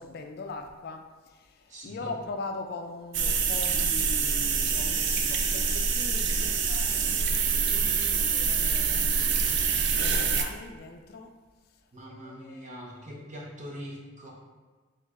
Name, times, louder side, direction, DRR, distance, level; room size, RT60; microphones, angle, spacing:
voice 1, 0.0-9.4 9.9-11.3 12.1-13.2, left 3 dB, 50° left, 5 dB, 0.3 m, -41 dB
voice 2, 1.7-2.2 11.9-14.3, equal, 40° right, -3 dB, 0.8 m, -42 dB
sound 1, 3.1-10.4, right 5 dB, 60° right, 0.4 m, -26 dB
4.4 x 3.8 x 2.4 m, 1.4 s
head